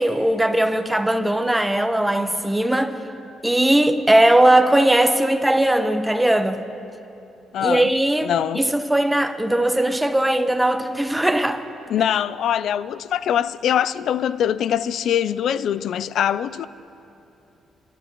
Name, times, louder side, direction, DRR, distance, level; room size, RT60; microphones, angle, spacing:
voice 1, 0.0-3.0 3.4-6.7 7.6-11.6, right 1 dB, 5° right, 0.9 m, -19 dB
voice 2, 7.5-7.9 8.2-8.6 11.9-16.7, left 9 dB, 70° left, 0.4 m, -23 dB
28.5 x 12.5 x 3.0 m
cardioid pair, 90°, 0 cm